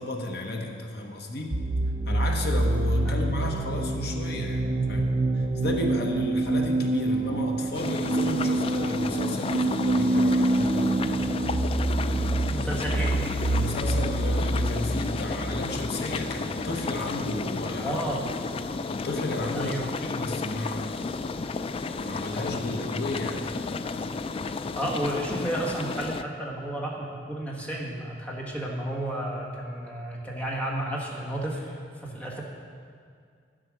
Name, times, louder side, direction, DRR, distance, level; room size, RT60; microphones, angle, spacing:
voice 1, 0.0-1.6 2.1-10.9 13.5-18.0 18.9-20.9 22.0-23.5, left 1 dB, 60° left, 2 dB, 1.2 m, -33 dB
sound 1, 1.5-17.1, right 2 dB, 35° right, 0.5 m, -27 dB
sound 2, 7.7-26.2, left 4 dB, 30° left, 0.3 m, -32 dB
voice 2, 12.5-13.2 17.8-18.3 19.5-19.8 24.5-32.4, right 1 dB, 5° left, -3 dB, 1.6 m, -32 dB
10.5 x 7.5 x 6.2 m, 2.2 s
head